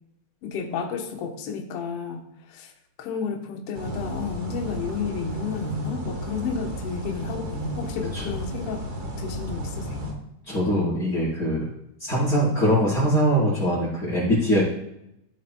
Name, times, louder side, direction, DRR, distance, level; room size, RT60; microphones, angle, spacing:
voice 1, 0.4-2.7 3.0-8.9 9.2-10.2, left 5 dB, 60° left, 2 dB, 1.7 m, -31 dB
sound 1, 3.7-10.1, equal, 45° right, 1.3 m, -34 dB
voice 2, 10.5-11.7 12.0-14.6, equal, 30° left, -8 dB, 4.1 m, -22 dB
14.5 x 7.6 x 2.2 m, 0.80 s
omnidirectional pair, 3.5 m